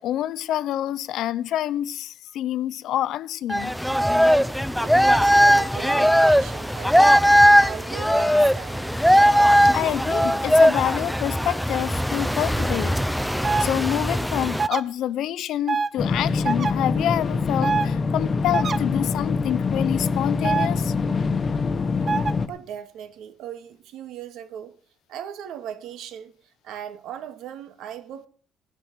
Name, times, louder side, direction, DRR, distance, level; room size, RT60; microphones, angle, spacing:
voice 1, 0.0-3.8 9.7-13.3 13.6-20.9, left 12 dB, 65° left, 0.7 m, -27 dB
sound 1, 3.5-14.7, equal, ahead, 0.6 m, -19 dB
voice 2, 4.8-9.0 22.4-24.7 25.1-28.3, right 10 dB, 70° right, 2.0 m, -38 dB
sound 2, 13.4-13.7 14.6-14.8 15.7-15.9 16.4-16.7 17.6-17.9 18.5-18.8 20.4-20.7 22.1-22.3, right 5 dB, 35° right, 0.9 m, -24 dB
sound 3, 16.0-22.5, left 4 dB, 30° left, 1.2 m, -24 dB
17.0 x 10.0 x 6.2 m
cardioid pair, 135°, 0 cm